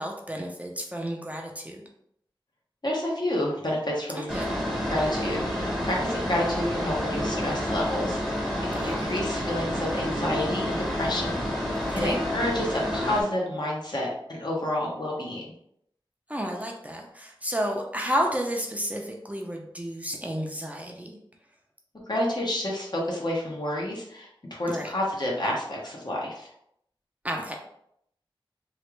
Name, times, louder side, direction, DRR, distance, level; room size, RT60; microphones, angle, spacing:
voice 1, 0.0-1.8 4.2-4.5 8.7-9.1 11.8-12.2 16.3-21.2 24.7-24.9 27.2-27.6, equal, 15° right, 0 dB, 0.5 m, -31 dB
voice 2, 2.8-4.3 4.9-8.4 8.7-15.5 22.1-26.5, left 1 dB, 50° left, -3 dB, 1.0 m, -29 dB
sound 1, 4.3-13.2, equal, 5° left, 0.9 m, -29 dB
3.2 x 2.4 x 3.0 m, 0.71 s
wide cardioid pair, 60°, 9 cm